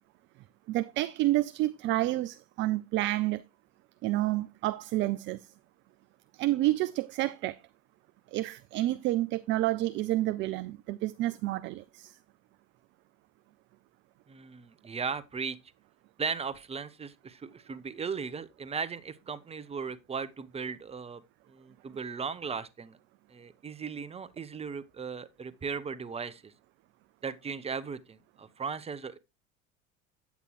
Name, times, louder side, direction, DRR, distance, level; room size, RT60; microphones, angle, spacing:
voice 1, 0.7-3.4 4.0-5.4 6.3-7.6 8.3-12.2, right 16 dB, 30° right, 0.4 m, -29 dB
voice 2, 14.3-15.6 16.2-23.0 23.3-26.5 27.2-29.2, right 5 dB, 15° right, 0.8 m, -37 dB
9.2 x 8.2 x 3.0 m
figure-of-eight pair, 70°, 40 cm